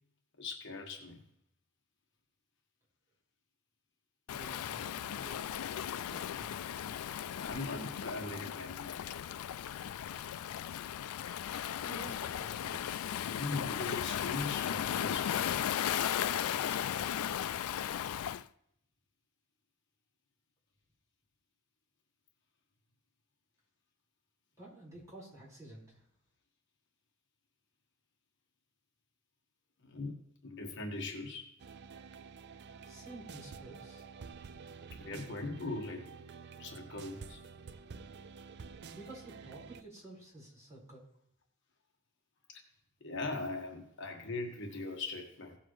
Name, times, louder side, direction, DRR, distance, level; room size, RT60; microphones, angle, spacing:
voice 1, 0.4-1.2 6.9-7.0 7.4-9.1 13.2-16.2 16.6-17.1 29.8-31.5 35.0-36.1 36.6-37.4 42.5-42.6 43.0-45.6, left 3 dB, 55° left, 2 dB, 1.4 m, -41 dB
Waves surf, 4.3-18.4, left 10 dB, 85° left, 0.4 m, -36 dB
voice 2, 4.3-5.5 5.9-6.6 11.8-13.1 24.6-26.0 32.8-34.1 38.6-41.0, right 2 dB, 15° right, -6 dB, 4.8 m, -51 dB
sound 1, 31.6-39.8, right 5 dB, 50° right, 0.5 m, -50 dB
16.5 x 7.2 x 3.1 m, 0.76 s
head